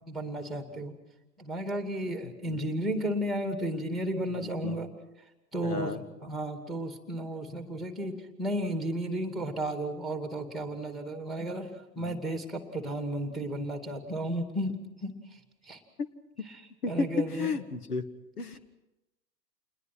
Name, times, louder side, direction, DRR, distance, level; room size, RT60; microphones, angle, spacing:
voice 1, 0.1-1.0 1.4-4.9 5.5-11.7 12.0-14.7 15.0-15.2 15.6-15.8 16.4-17.5, right 1 dB, ahead, 6 dB, 2.5 m, -33 dB
voice 2, 4.4-4.8 5.6-6.0 12.0-12.2 16.0-16.1 16.8-18.1 18.4-18.6, left 4 dB, 65° left, 10 dB, 2.1 m, -32 dB
28.5 x 21.0 x 6.1 m, 0.98 s
figure-of-eight pair, 115°, 49 cm